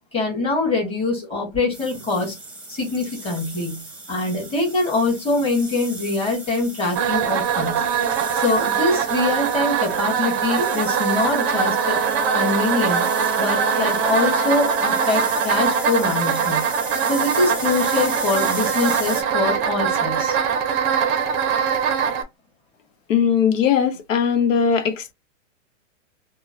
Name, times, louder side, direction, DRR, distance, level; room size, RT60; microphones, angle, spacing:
voice 1, 0.1-2.3 2.7-7.8 8.3-12.0 12.3-13.1 13.4-16.6 17.1-20.4, left 2 dB, 15° left, 1.6 m, -24 dB
sound 1, 1.7-19.2, right 2 dB, 5° right, 0.9 m, -36 dB
sound 2, 6.9-22.2, right 7 dB, 30° right, 0.6 m, -22 dB
voice 2, 23.1-25.1, left 7 dB, 75° left, 0.9 m, -19 dB
3.7 x 2.1 x 2.5 m
hypercardioid pair, 135°, 39 cm